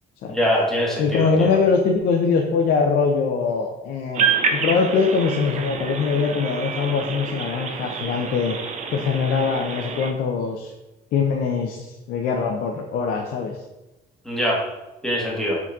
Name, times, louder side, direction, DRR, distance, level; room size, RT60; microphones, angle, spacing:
voice 1, 0.3-1.5 14.2-14.6 15.0-15.6, equal, 5° left, -5 dB, 1.2 m, -23 dB
voice 2, 1.0-8.6 8.9-10.7 11.1-13.6, left 5 dB, 70° left, 1 dB, 0.5 m, -22 dB
sound 1, 4.1-10.1, right 6 dB, 45° right, 0.5 m, -27 dB
4.5 x 3.9 x 2.4 m, 1.0 s
cardioid pair, 110°, 17 cm